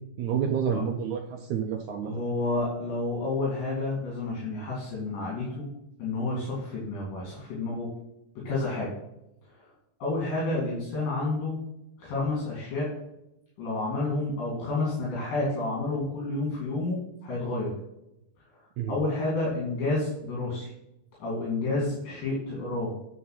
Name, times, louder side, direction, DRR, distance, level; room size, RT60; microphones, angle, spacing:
voice 1, 0.2-2.1 18.8-19.0, right 7 dB, 75° right, 3 dB, 1.7 m, -29 dB
voice 2, 2.0-5.7 6.0-7.9 8.5-8.9 9.5-9.6 10.0-11.6 12.0-12.9 13.6-17.7 18.9-20.7 21.2-23.0, left 2 dB, 70° left, -6 dB, 4.0 m, -30 dB
9.9 x 4.8 x 5.8 m, 0.86 s
omnidirectional pair, 4.2 m